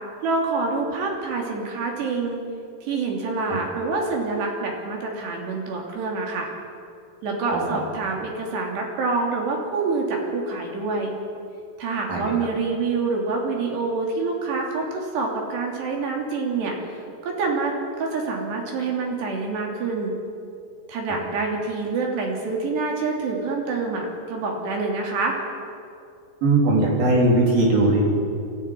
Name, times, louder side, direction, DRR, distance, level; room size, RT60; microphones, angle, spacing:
voice 1, 0.2-2.4 2.8-6.5 7.2-11.1 11.8-16.8 17.2-20.2 20.9-25.4, right 3 dB, 80° right, 0 dB, 5.3 m, -26 dB
voice 2, 7.5-7.8 12.1-12.2 26.4-28.0, right 2 dB, 60° right, -2 dB, 5.1 m, -19 dB
21.5 x 17.0 x 10.0 m, 2.4 s
omnidirectional pair, 4.8 m